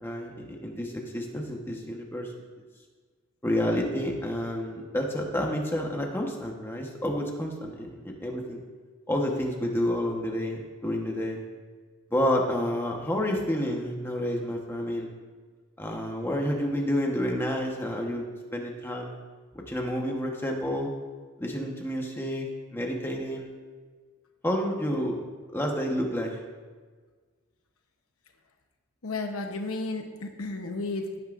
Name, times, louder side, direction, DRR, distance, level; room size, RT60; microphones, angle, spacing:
voice 1, 0.0-2.3 3.4-8.6 9.1-11.4 12.1-15.1 15.8-18.2 18.5-19.1 19.7-20.9 21.4-22.5 22.7-23.5 24.4-25.1 25.5-26.4, equal, 10° left, 0 dB, 1.2 m, -29 dB
voice 2, 29.0-31.2, left 2 dB, 85° left, 4 dB, 1.0 m, -33 dB
16.5 x 9.4 x 2.6 m, 1.5 s
head